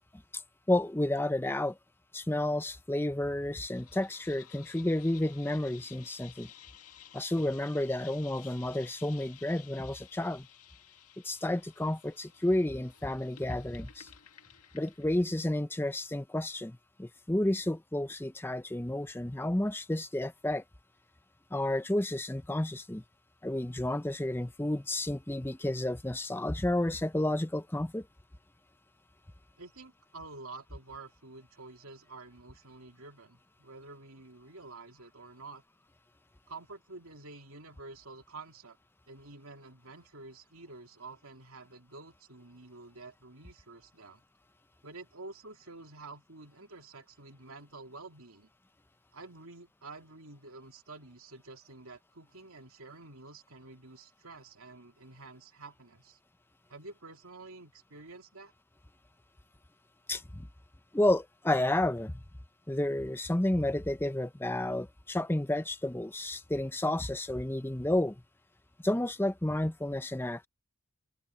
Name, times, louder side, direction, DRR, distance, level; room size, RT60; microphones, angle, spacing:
voice 1, 0.7-1.8 2.1-6.5 7.1-10.5 11.2-14.1 14.7-20.6 21.5-23.0 23.4-28.1 60.1-60.5 60.9-62.2 62.7-68.2 68.8-70.5, left 1 dB, 10° left, 0.6 m, -31 dB
sound 1, 3.7-15.2, left 10 dB, 80° left, 2.1 m, -55 dB
voice 2, 29.6-35.6 36.5-38.8 39.1-44.2 44.8-48.5 49.1-56.2 56.7-58.5, right 3 dB, 70° right, 2.8 m, -49 dB
open air
head